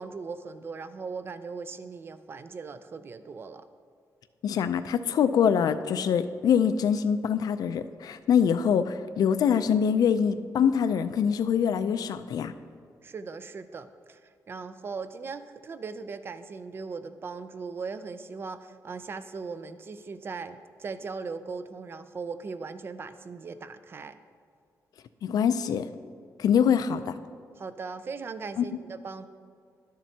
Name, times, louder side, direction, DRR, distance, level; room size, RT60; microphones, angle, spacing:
voice 1, 0.0-3.7 13.0-14.2 14.5-24.2 27.6-29.2, right 4 dB, 35° right, 12 dB, 0.4 m, -39 dB
voice 2, 4.4-12.5 25.2-25.9 26.4-27.2 28.6-28.7, left 7 dB, 70° left, 11 dB, 0.4 m, -24 dB
12.0 x 7.4 x 2.8 m, 2.1 s
wide cardioid pair, 150°, 7 cm